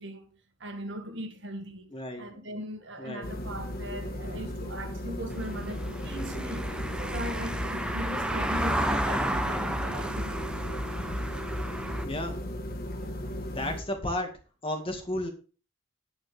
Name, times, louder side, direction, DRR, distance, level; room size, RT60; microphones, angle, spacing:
voice 1, 0.0-1.9 2.2-6.7 7.0-10.4 12.9-13.3, equal, 60° right, 2.0 m, -39 dB
voice 2, 1.9-2.3 3.0-3.3 12.0-12.4 13.5-14.3 14.6-15.3, left 1 dB, 25° left, 2.0 m, -33 dB
sound 1, 3.2-13.8, equal, 50° left, 1.5 m, -36 dB
Car passing by / Engine, 5.3-12.1, right 1 dB, 5° right, 0.9 m, -32 dB
9.7 x 9.5 x 3.5 m
head